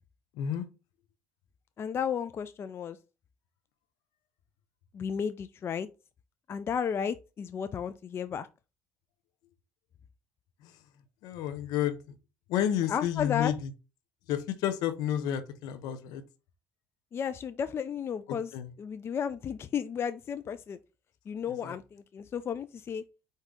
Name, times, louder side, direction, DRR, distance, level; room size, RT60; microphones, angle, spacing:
voice 1, 0.3-0.7 10.6-10.8 11.2-12.0 12.5-13.7 14.3-16.2 18.5-18.7 21.6-21.7, left 10 dB, 70° left, 0.7 m, -31 dB
voice 2, 1.8-3.0 4.9-5.9 6.5-8.5 12.9-13.5 17.1-18.5 18.8-20.8 21.3-23.0, left 7 dB, 35° left, 0.3 m, -33 dB
4.6 x 2.7 x 3.7 m
supercardioid pair, 80°, 7 cm